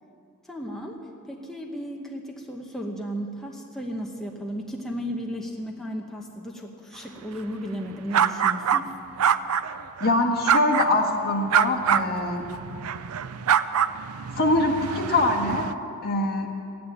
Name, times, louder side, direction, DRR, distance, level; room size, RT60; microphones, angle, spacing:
voice 1, 0.5-1.0 1.3-8.9, equal, ahead, -1 dB, 1.0 m, -34 dB
sound 1, 8.1-8.8 9.2-10.1 10.5-11.1 11.5-15.7, right 8 dB, 85° right, 0.5 m, -25 dB
voice 2, 10.0-12.5 14.4-15.7 16.0-16.5, left 2 dB, 45° left, 2 dB, 1.6 m, -23 dB
14.5 x 9.4 x 9.8 m, 2.6 s
head